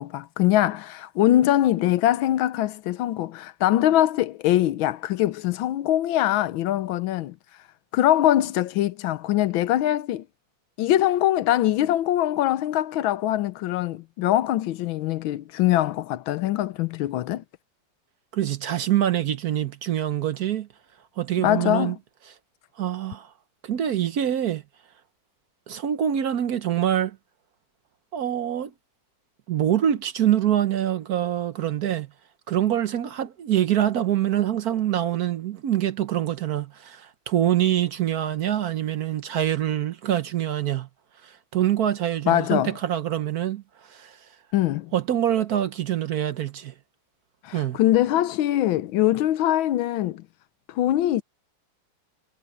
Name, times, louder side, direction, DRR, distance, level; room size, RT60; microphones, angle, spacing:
voice 1, 0.0-7.3 7.9-10.2 10.8-17.4 21.4-22.0 42.3-42.7 44.5-44.9 47.4-50.3 50.7-51.2, left 13 dB, 85° left, 1.5 m, -22 dB
voice 2, 18.3-20.7 21.2-22.0 22.8-23.3 23.6-24.6 25.7-27.2 28.1-28.7 29.5-32.1 32.5-40.9 41.2-44.2 44.9-46.7 47.5-47.8, right 11 dB, 60° right, 1.1 m, -25 dB
omnidirectional pair, 2.1 m